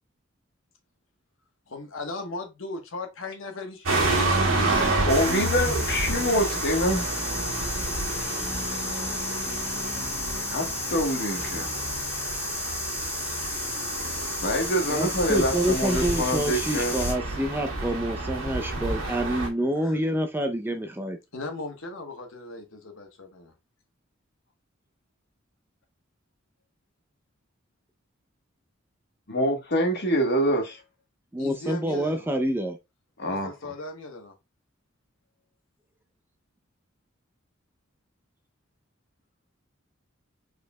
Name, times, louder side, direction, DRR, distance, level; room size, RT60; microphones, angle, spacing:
voice 1, 1.7-5.4 19.8-20.0 21.3-23.5 31.4-32.3 33.2-34.3, left 2 dB, 75° left, 1.2 m, -38 dB
sound 1, 3.9-19.5, right 2 dB, 80° right, 1.9 m, -30 dB
voice 2, 5.0-7.3 10.5-11.7 14.4-17.0 29.3-30.8 33.2-33.5, equal, 55° left, 1.3 m, -25 dB
sound 2, 5.1-17.1, left 2 dB, 10° left, 1.9 m, -33 dB
voice 3, 14.9-21.2 31.3-32.8, right 1 dB, 10° right, 0.5 m, -27 dB
4.8 x 4.3 x 2.2 m
head